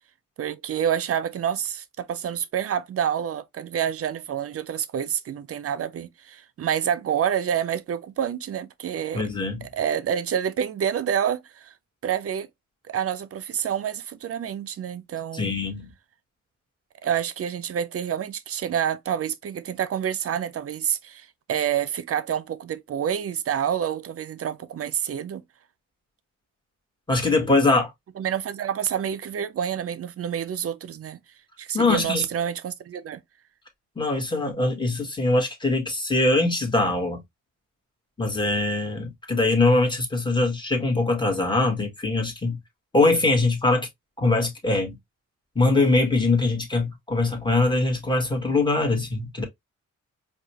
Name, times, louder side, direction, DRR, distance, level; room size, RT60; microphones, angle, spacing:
voice 1, 0.4-9.3 9.6-11.7 12.0-12.5 12.9-15.5 17.0-25.4 28.2-31.2 31.6-33.2, right 9 dB, 50° right, 0.6 m, -28 dB
voice 2, 9.1-9.7 15.3-15.9 27.1-27.9 31.7-32.2 34.0-37.2 38.2-42.6 42.9-43.9 44.2-45.0 45.5-49.4, left 2 dB, 15° left, 1.5 m, -22 dB
4.7 x 2.3 x 2.9 m
cardioid pair, 110°, 30 cm